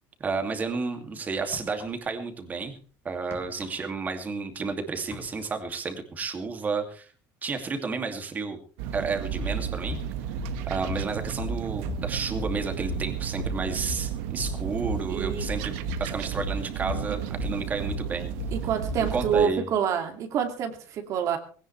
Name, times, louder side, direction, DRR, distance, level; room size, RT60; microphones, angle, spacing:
voice 1, 0.2-2.7 3.0-7.1 7.4-8.6 8.9-10.0 10.7-18.3 19.1-19.7, right 4 dB, 20° right, 5 dB, 2.5 m, -31 dB
sound 1, 1.5-2.3 2.6-4.7 4.9-5.7, left 5 dB, 30° left, 3.2 m, -47 dB
sound 2, 8.8-19.5, right 10 dB, 85° right, 1.5 m, -33 dB
sound 3, 9.4-19.2, left 6 dB, 65° left, 3.9 m, -36 dB
voice 2, 15.1-15.5 18.5-21.4, right 7 dB, 45° right, 5 dB, 2.4 m, -27 dB
19.5 x 17.5 x 3.3 m, 0.41 s
cardioid pair, 165°, 8 cm